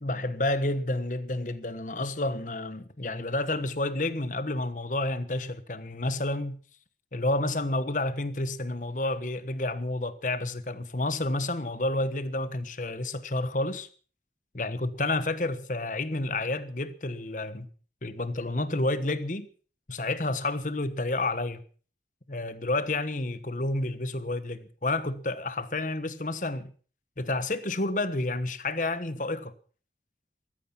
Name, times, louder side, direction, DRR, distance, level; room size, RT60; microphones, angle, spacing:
voice 1, 0.0-6.6 7.1-13.9 14.5-17.7 18.0-19.5 19.9-21.6 22.3-26.7 27.2-29.5, left 2 dB, 45° left, 1.2 m, -30 dB
15.0 x 14.0 x 5.8 m
head